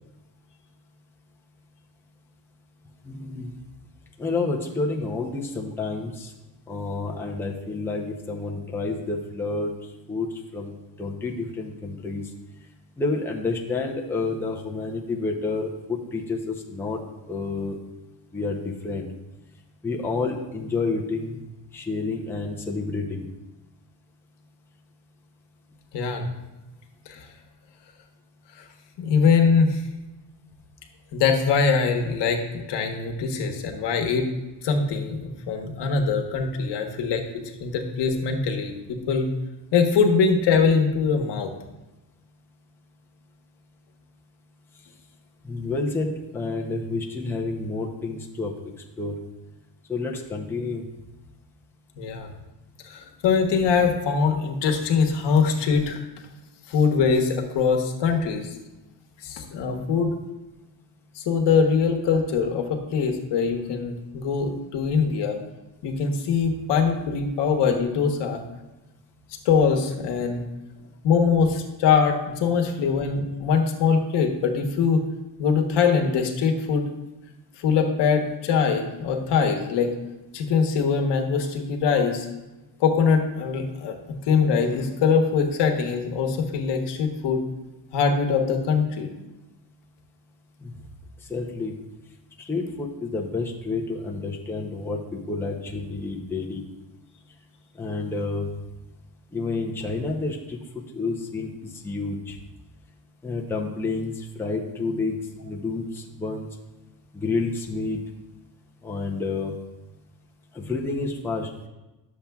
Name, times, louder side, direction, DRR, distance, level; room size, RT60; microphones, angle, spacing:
voice 1, 3.0-3.6 4.2-6.3 6.7-10.7 11.0-12.2 13.0-17.0 17.3-17.8 18.3-19.1 19.8-21.4 21.7-23.3 45.4-48.5 49.0-49.2 49.9-50.8 90.6-90.7 91.3-91.7 92.4-96.6 97.7-98.5 99.3-100.6 100.9-102.4 103.2-105.2 105.4-106.5 107.1-108.0 108.8-109.5 110.5-111.5, left 3 dB, 5° left, 0 dB, 0.6 m, -29 dB
voice 2, 25.9-26.3 27.1-27.3 28.6-28.7 29.0-29.8 31.1-34.2 34.6-37.2 37.6-39.3 39.7-41.5 52.0-52.3 52.8-56.0 56.7-58.5 59.2-60.1 61.1-65.4 65.8-68.4 69.4-70.4 71.0-75.0 75.4-76.9 77.6-79.9 80.3-82.3 82.8-87.4 87.9-89.1, left 5 dB, 70° left, 4 dB, 1.1 m, -22 dB
11.5 x 7.1 x 2.3 m, 1.1 s
cardioid pair, 150°, 44 cm